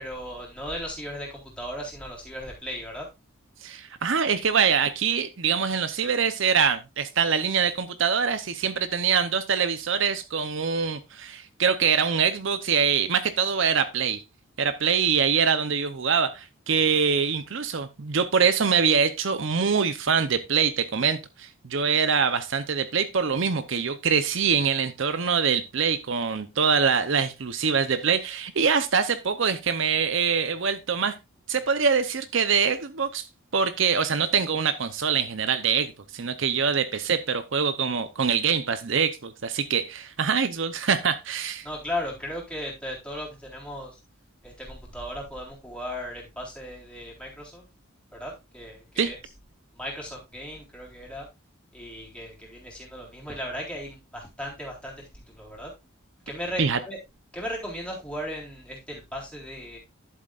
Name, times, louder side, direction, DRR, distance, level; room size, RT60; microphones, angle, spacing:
voice 1, 0.0-3.1 41.6-44.0 44.4-47.6 48.1-49.2 49.7-51.3 51.7-55.7 56.3-57.0 57.3-59.8, equal, 5° left, 3.8 m, -36 dB
voice 2, 3.6-14.2 14.6-31.1 31.5-33.2 33.5-41.7 49.0-49.1 56.6-56.8, right 6 dB, 60° right, 0.7 m, -24 dB
11.0 x 7.9 x 2.4 m
head